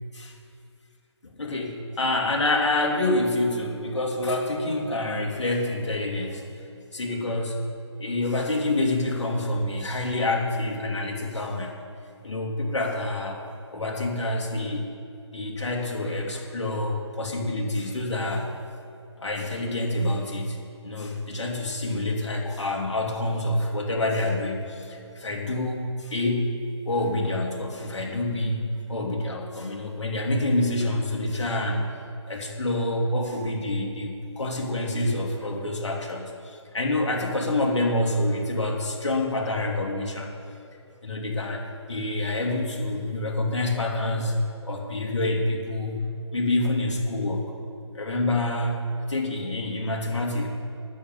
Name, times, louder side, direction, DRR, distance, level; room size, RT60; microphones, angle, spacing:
voice 1, 1.4-6.5 6.9-11.7 12.2-13.4 13.7-14.9 15.3-18.5 19.2-20.6 20.8-26.5 26.8-31.9 32.3-40.3 41.0-41.6 41.9-47.5 47.9-50.5, left 2 dB, 70° left, -1 dB, 3.0 m, -27 dB
9.9 x 7.9 x 9.1 m, 2.5 s
figure-of-eight pair, 155°, 15 cm